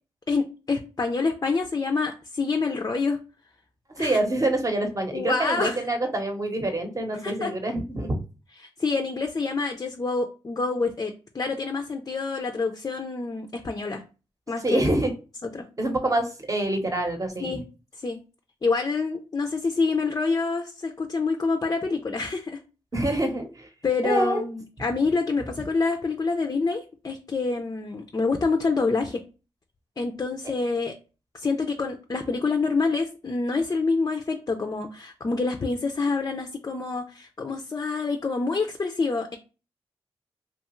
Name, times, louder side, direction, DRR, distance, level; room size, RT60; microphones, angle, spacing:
voice 1, 0.3-3.2 4.0-4.2 5.1-5.8 7.2-7.5 8.8-14.0 14.5-14.8 15.5-15.6 17.4-17.6 18.0-18.2 18.6-22.6 23.8-29.2 30.0-30.9 31.3-39.4, left 4 dB, 35° left, 5 dB, 0.4 m, -27 dB
voice 2, 4.0-8.2 14.6-15.1 15.8-17.6 22.9-23.7 24.0-24.4, right 1 dB, 30° right, 4 dB, 0.8 m, -26 dB
2.8 x 2.3 x 3.0 m, 0.33 s
cardioid pair, 50°, 11 cm